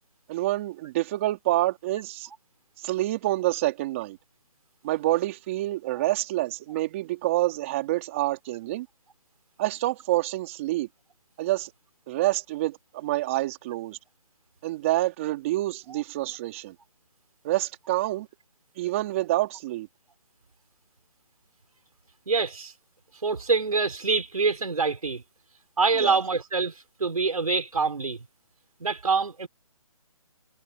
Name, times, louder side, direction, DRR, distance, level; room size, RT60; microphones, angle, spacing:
voice 1, 0.3-2.3 2.8-4.2 4.8-8.9 9.6-10.9 11.4-11.7 12.1-14.0 14.6-16.7 17.4-18.3 18.8-19.9 26.0-26.2, right 16 dB, 25° right, 3.4 m, -27 dB
voice 2, 22.3-22.7 23.2-25.2 25.8-26.7 27.0-28.2 28.8-29.5, right 4 dB, 85° right, 4.8 m, -25 dB
hypercardioid pair, 165°, 18 cm